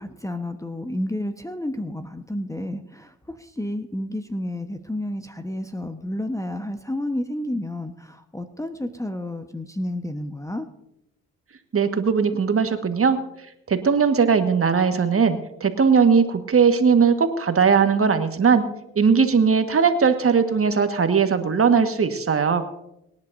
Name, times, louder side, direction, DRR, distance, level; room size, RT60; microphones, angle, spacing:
voice 1, 0.0-10.7, left 1 dB, 10° left, 8 dB, 1.2 m, -31 dB
voice 2, 11.7-13.2 13.7-18.6 18.9-22.6, right 6 dB, 35° right, 8 dB, 1.6 m, -19 dB
25.5 x 11.0 x 2.7 m, 0.84 s
hypercardioid pair, 50°, 39 cm